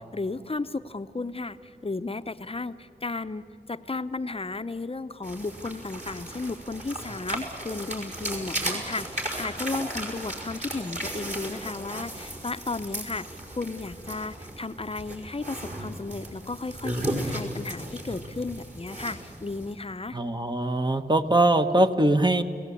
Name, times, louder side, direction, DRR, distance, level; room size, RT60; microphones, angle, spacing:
voice 1, 0.0-3.4 3.7-20.2, left 3 dB, 35° left, 11 dB, 0.8 m, -34 dB
sound 1, 5.2-19.7, right 1 dB, 45° right, 5.1 m, -35 dB
voice 2, 20.1-22.4, right 1 dB, 25° right, 7 dB, 1.3 m, -22 dB
29.5 x 18.0 x 8.5 m, 2.4 s
wide cardioid pair, 55°, 17 cm